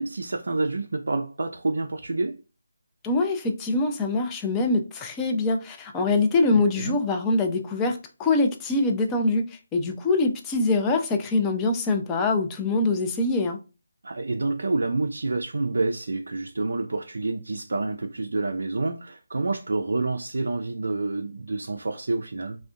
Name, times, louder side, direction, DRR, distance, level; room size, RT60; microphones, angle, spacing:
voice 1, 0.0-2.4 6.5-7.0 14.0-22.6, right 3 dB, 65° right, 0.3 m, -28 dB
voice 2, 3.0-13.6, left 3 dB, 15° left, 0.4 m, -24 dB
3.3 x 2.1 x 2.5 m
figure-of-eight pair, 155°, 0 cm